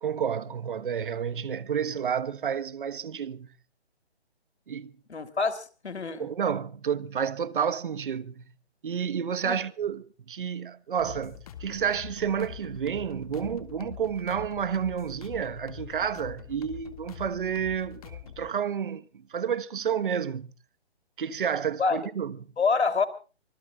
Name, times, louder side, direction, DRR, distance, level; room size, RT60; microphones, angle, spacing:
voice 1, 0.0-3.5 4.7-4.9 6.2-8.5 8.8-20.5 21.2-22.5, right 7 dB, 50° right, 1.2 m, -30 dB
voice 2, 5.1-6.3 9.4-9.6 21.8-22.0 22.6-23.0, left 4 dB, 80° left, 3.2 m, -26 dB
sound 1, 11.0-18.5, left 10 dB, 35° left, 2.1 m, -44 dB
25.0 x 21.5 x 2.4 m
hypercardioid pair, 160°, 33 cm